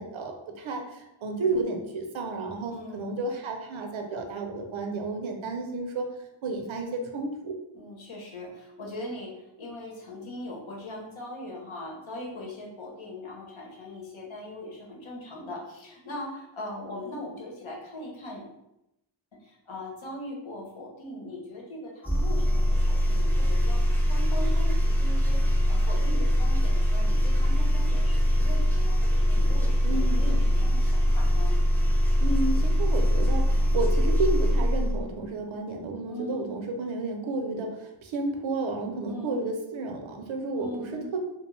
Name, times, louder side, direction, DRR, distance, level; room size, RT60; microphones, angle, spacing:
voice 1, 0.0-6.1 6.4-7.5 29.8-30.3 32.2-41.2, right 3 dB, 80° right, 3 dB, 0.6 m, -32 dB
voice 2, 2.7-3.1 7.7-18.4 19.4-25.4 25.7-31.6 36.1-36.5 39.1-39.5 40.5-41.1, left 1 dB, 75° left, -2 dB, 0.9 m, -40 dB
sound 1, 22.0-35.0, equal, 5° left, 0.7 m, -23 dB
2.4 x 2.2 x 3.1 m, 0.87 s
cardioid pair, 45°, 47 cm